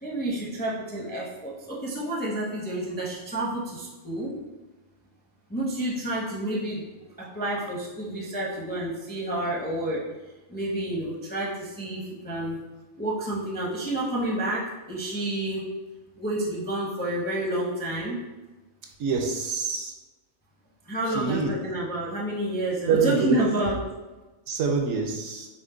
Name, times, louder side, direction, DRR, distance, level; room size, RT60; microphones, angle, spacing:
voice 1, 0.0-4.3 5.5-6.8 7.2-10.1 10.5-12.6 13.0-15.7 16.2-18.2 20.9-23.8, right 1 dB, 10° left, -4 dB, 0.4 m, -29 dB
voice 2, 19.0-19.9 21.1-21.5 22.9-23.4 24.5-25.5, right 5 dB, 75° right, 2 dB, 1.0 m, -25 dB
5.9 x 2.1 x 3.7 m, 1.1 s
omnidirectional pair, 1.4 m